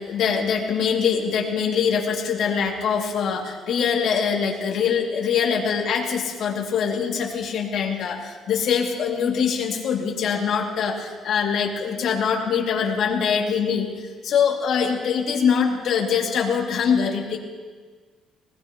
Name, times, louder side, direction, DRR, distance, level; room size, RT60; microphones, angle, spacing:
voice 1, 0.1-13.9 14.2-17.4, left 7 dB, 60° left, 0 dB, 2.3 m, -23 dB
20.5 x 19.0 x 3.0 m, 1.5 s
cardioid pair, 135°, 0 cm